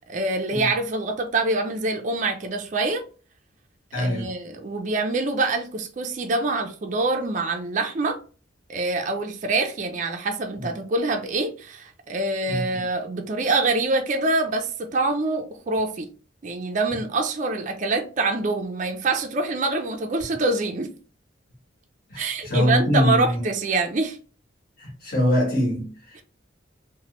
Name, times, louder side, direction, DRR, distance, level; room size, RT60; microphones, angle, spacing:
voice 1, 0.1-3.0 3.9-8.2 8.7-16.1 16.4-20.9 22.2-24.2, right 2 dB, 40° right, 0.4 m, -25 dB
voice 2, 3.9-4.3 10.6-10.7 12.5-12.6 22.1-23.4 24.8-26.2, equal, 50° left, 1.2 m, -23 dB
3.0 x 2.1 x 2.9 m
head